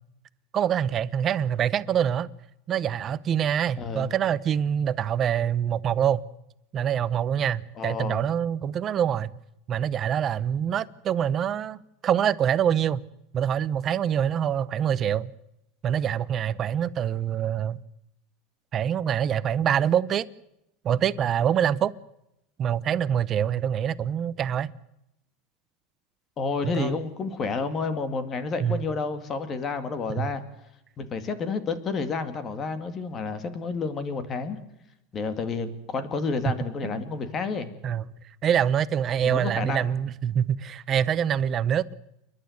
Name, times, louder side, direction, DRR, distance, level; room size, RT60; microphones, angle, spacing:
voice 1, 0.5-2.3 2.7-6.2 6.7-9.3 9.7-13.0 13.3-15.3 15.8-17.8 18.7-20.3 20.8-21.9 22.6-24.7 26.6-27.0 28.6-28.9 30.2-30.3 36.5-36.6 36.8-37.0 37.8-38.1 38.4-41.9, right 9 dB, 30° right, 0.7 m, -25 dB
voice 2, 3.8-4.1 7.8-8.2 26.4-30.4 31.0-34.6 35.1-37.7 39.2-39.9, left 4 dB, 25° left, 2.2 m, -30 dB
29.0 x 11.5 x 9.6 m
supercardioid pair, 155°, 0 cm